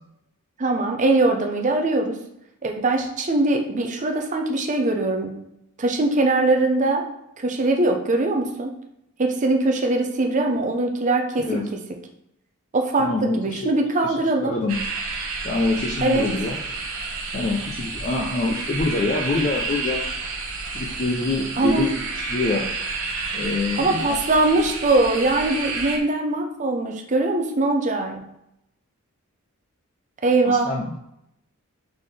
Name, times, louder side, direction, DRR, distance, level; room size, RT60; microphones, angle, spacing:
voice 1, 0.6-2.2 2.6-5.3 5.8-7.0 7.4-8.7 9.2-11.5 12.7-14.5 16.0-16.3 21.6-21.8 23.8-28.2 30.2-30.7, right 2 dB, 35° right, 3 dB, 0.6 m, -21 dB
voice 2, 13.0-13.7 14.0-14.2 14.4-14.8 15.4-16.6 17.3-20.0 20.7-21.9 22.2-22.7 23.3-24.2 30.4-31.0, left 3 dB, 35° left, 0 dB, 0.4 m, -25 dB
sound 1, 14.7-26.0, right 4 dB, 65° right, 0.8 m, -30 dB
4.0 x 3.9 x 3.2 m, 0.81 s
head